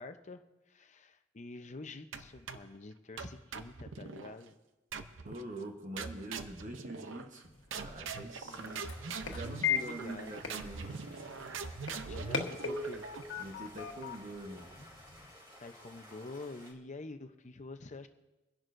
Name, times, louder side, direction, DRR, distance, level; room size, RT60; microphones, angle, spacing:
voice 1, 0.0-4.6 8.4-8.9 9.8-10.4 10.9-11.2 12.0-13.1 15.6-18.1, left 3 dB, 40° left, 8 dB, 0.7 m, -47 dB
sound 1, 2.1-2.8 3.2-4.3 4.9-5.5 6.0-7.4 7.7-13.4, right 4 dB, 75° right, 0.7 m, -43 dB
voice 2, 5.2-8.8 9.3-11.0 13.4-14.8, right 1 dB, 40° right, 2 dB, 1.2 m, -44 dB
sound 2, 7.4-15.3, left 6 dB, 70° left, 1.3 m, -40 dB
Stream, 8.5-16.7, equal, 25° right, 2.8 m, -55 dB
23.5 x 11.0 x 2.6 m, 1.0 s
head